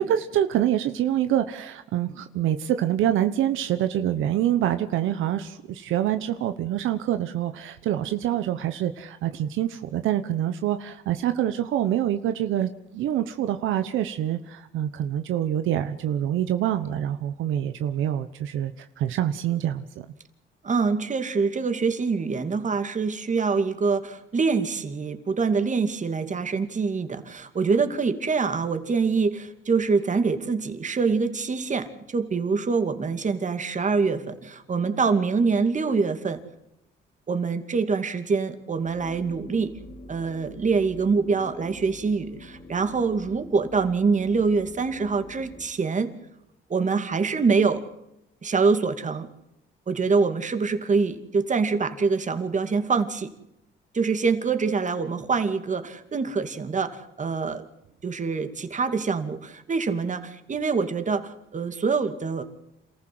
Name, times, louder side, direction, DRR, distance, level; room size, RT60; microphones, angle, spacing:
voice 1, 0.0-20.1, right 11 dB, 85° right, 9 dB, 1.1 m, -26 dB
voice 2, 20.6-36.4 37.3-39.7 40.1-46.1 46.7-47.8 48.4-49.3 49.9-53.3 53.9-57.6 58.0-62.4, right 4 dB, 40° right, 8 dB, 2.4 m, -25 dB
sound 1, 38.7-45.7, left 1 dB, 30° left, 2.5 m, -46 dB
28.0 x 15.0 x 7.8 m, 0.87 s
cardioid pair, 90°, 20 cm